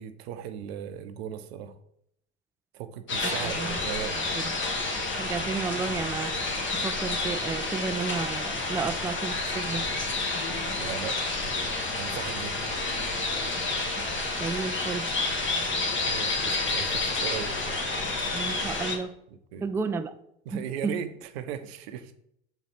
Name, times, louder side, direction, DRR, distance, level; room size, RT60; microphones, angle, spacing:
voice 1, 0.0-1.8 2.7-4.2 10.8-11.2 12.0-12.6 16.1-17.6 19.5-19.7 20.5-22.1, right 9 dB, 70° right, 10 dB, 0.8 m, -37 dB
sound 1, 3.1-19.0, left 3 dB, 35° left, 1.7 m, -29 dB
voice 2, 3.3-3.8 4.2-4.5 5.2-6.4 6.8-9.9 14.4-15.1 18.3-19.1 19.6-20.1 20.5-21.0, right 5 dB, 10° right, 8 dB, 0.4 m, -32 dB
6.8 x 4.5 x 4.2 m, 0.72 s
hypercardioid pair, 85°, 32 cm